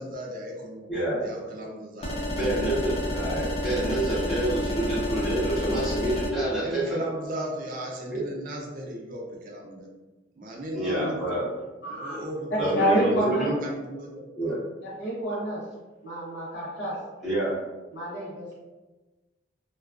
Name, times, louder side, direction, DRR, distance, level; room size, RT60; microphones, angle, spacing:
voice 1, 0.0-0.9 1.2-2.2 6.5-9.9 10.4-11.5 11.8-12.8 13.1-14.5, equal, 45° right, -1 dB, 0.4 m, -36 dB
voice 2, 0.9-1.2 2.3-7.0 8.1-8.2 10.7-11.4 12.6-13.6 14.4-14.6 17.2-17.5, right 1 dB, ahead, -11 dB, 0.7 m, -27 dB
sound 1, 2.0-6.3, left 1 dB, 30° left, 0.3 m, -30 dB
voice 3, 11.8-12.2 12.8-13.5 14.8-15.6 16.0-17.0 17.9-18.5, right 1 dB, 75° left, -7 dB, 0.9 m, -28 dB
2.3 x 2.2 x 2.4 m, 1.2 s
head